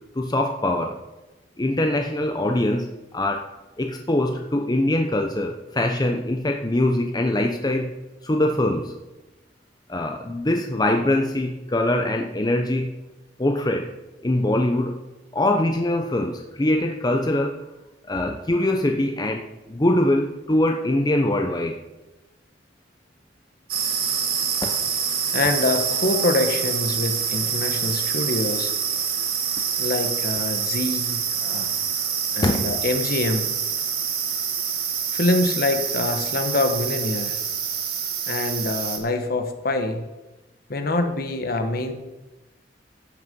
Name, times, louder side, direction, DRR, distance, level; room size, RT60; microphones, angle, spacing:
voice 1, 0.1-1.0 1.6-3.5 3.8-7.9 8.2-9.0 9.9-13.0 13.4-13.9 14.2-15.0 15.3-17.7 18.1-21.8 24.6-24.8 32.4-32.7, left 1 dB, 20° left, 3 dB, 0.7 m, -23 dB
sound 1, 23.7-39.0, right 7 dB, 55° right, 1.7 m, -26 dB
voice 2, 25.3-28.7 29.8-31.7 32.3-33.5 35.1-37.4 38.3-40.0 40.7-41.9, left 2 dB, 55° left, 6 dB, 1.3 m, -25 dB
14.5 x 6.6 x 5.3 m, 1.1 s
head